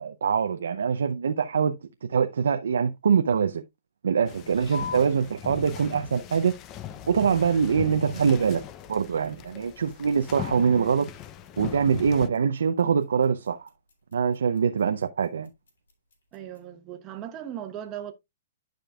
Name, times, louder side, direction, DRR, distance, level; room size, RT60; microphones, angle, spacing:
voice 1, 0.0-1.8 2.1-3.6 4.0-6.5 7.1-8.6 8.9-11.1 11.6-13.7 14.1-15.5, right 6 dB, 90° right, 0.6 m, -24 dB
sound 1, 4.3-12.3, left 11 dB, 25° left, 0.6 m, -40 dB
sound 2, 4.7-16.7, left 6 dB, 85° left, 3.6 m, -46 dB
voice 2, 16.3-18.1, right 10 dB, 25° right, 1.1 m, -37 dB
11.5 x 5.1 x 2.3 m
hypercardioid pair, 150°, 0 cm